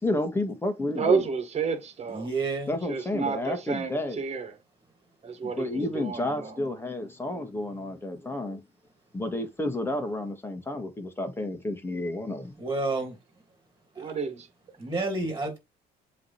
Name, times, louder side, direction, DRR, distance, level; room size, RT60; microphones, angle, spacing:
voice 1, 0.0-1.2 2.7-4.2 5.6-8.6 9.1-12.6, left 1 dB, 15° left, 1.9 m, -31 dB
voice 2, 0.9-2.3 2.9-4.6 5.2-6.6 14.0-14.5, right 5 dB, 40° right, 1.9 m, -30 dB
voice 3, 2.1-2.8 12.6-13.2 13.9-14.2 14.8-15.6, right 3 dB, 15° right, 2.9 m, -30 dB
7.6 x 3.4 x 4.3 m
cardioid pair, 110°, 17 cm